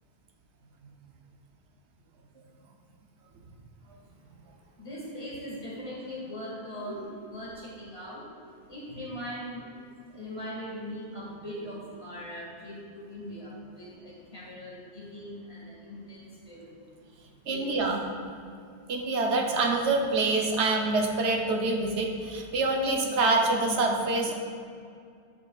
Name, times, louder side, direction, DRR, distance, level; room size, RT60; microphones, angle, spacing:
voice 1, 4.8-9.7 10.1-16.9 17.5-17.8, equal, 30° left, -6 dB, 1.8 m, -40 dB
voice 2, 17.5-18.0 18.9-24.3, right 3 dB, 85° right, 2 dB, 1.1 m, -26 dB
9.5 x 5.4 x 2.4 m, 2.4 s
omnidirectional pair, 1.1 m